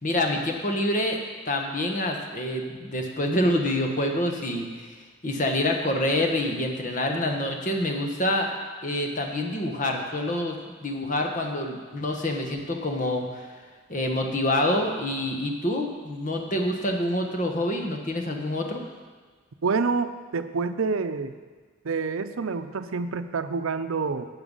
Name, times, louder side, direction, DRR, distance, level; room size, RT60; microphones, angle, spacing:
voice 1, 0.0-4.7 5.2-8.5 8.8-13.5 13.9-18.8, left 1 dB, 40° left, 3 dB, 1.3 m, -27 dB
voice 2, 19.6-21.3 21.8-24.3, right 4 dB, 80° right, 10 dB, 0.6 m, -27 dB
12.5 x 7.9 x 5.5 m, 1.5 s
head